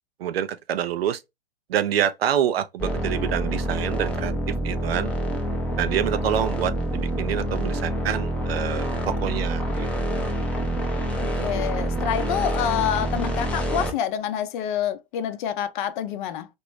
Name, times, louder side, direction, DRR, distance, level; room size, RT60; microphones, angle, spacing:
voice 1, 0.2-1.2 1.7-4.3 4.6-5.1 5.8-10.2, right 10 dB, 70° right, 0.5 m, -27 dB
sound 1, 2.8-13.9, equal, 5° left, 0.6 m, -27 dB
voice 2, 11.2-16.5, left 9 dB, 50° left, 0.6 m, -27 dB
2.9 x 2.6 x 3.0 m
hypercardioid pair, 105°, 31 cm